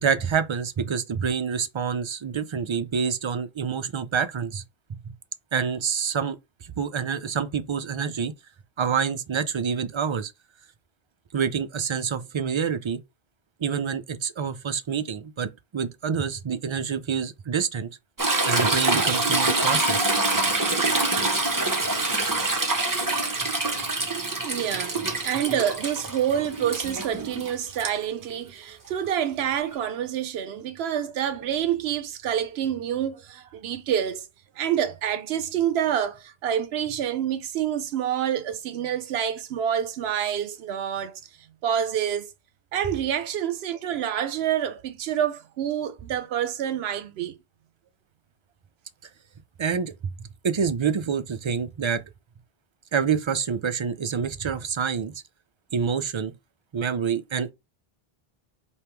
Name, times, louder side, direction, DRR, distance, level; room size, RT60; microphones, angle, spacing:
voice 1, 0.0-4.6 5.5-8.3 8.8-10.3 11.3-13.0 13.6-17.9 18.5-20.1 49.6-49.9 50.4-52.0 52.9-55.1 55.7-56.3 56.7-57.5, right 6 dB, 50° right, 0.3 m, -27 dB
Toilet flush / Trickle dribble, 18.2-27.9 29.7-29.8, right 2 dB, 20° right, 0.8 m, -25 dB
voice 2, 24.4-34.3 34.6-41.2 41.6-42.3 42.7-47.4, right 9 dB, 80° right, 0.8 m, -27 dB
3.4 x 3.0 x 4.5 m
omnidirectional pair, 1.0 m